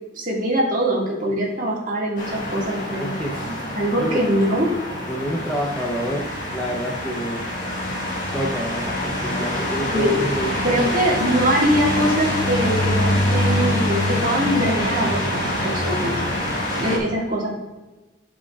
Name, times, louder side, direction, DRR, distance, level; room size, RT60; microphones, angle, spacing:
voice 1, 0.1-3.1 3.7-4.7 9.9-10.2 10.6-16.2 16.8-17.5, equal, 45° right, -3 dB, 1.9 m, -22 dB
sound 1, 2.2-17.0, left 1 dB, 45° left, 1.6 m, -25 dB
voice 2, 3.0-4.3 5.1-7.6 8.3-10.6, equal, 5° left, -2 dB, 0.6 m, -28 dB
11.5 x 5.2 x 2.4 m, 1.1 s
head